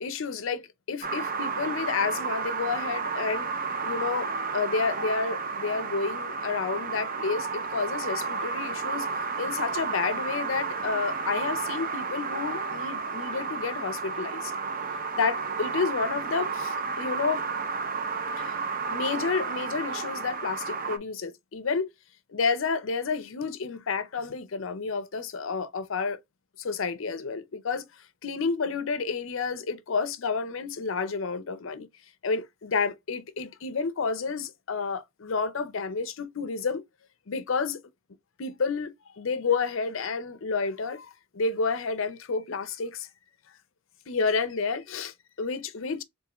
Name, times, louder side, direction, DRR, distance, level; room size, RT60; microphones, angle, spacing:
voice 1, 0.0-3.5 3.8-9.1 9.4-14.5 15.1-17.4 18.4-18.6 18.9-21.9 22.3-26.2 26.6-27.9 28.2-31.9 32.2-36.8 37.3-37.8 38.4-43.1 44.1-46.0, left 4 dB, 65° left, 0.6 m, -30 dB
sound 1, 1.0-21.0, right 4 dB, 40° right, 0.6 m, -32 dB
3.7 x 3.6 x 2.9 m
head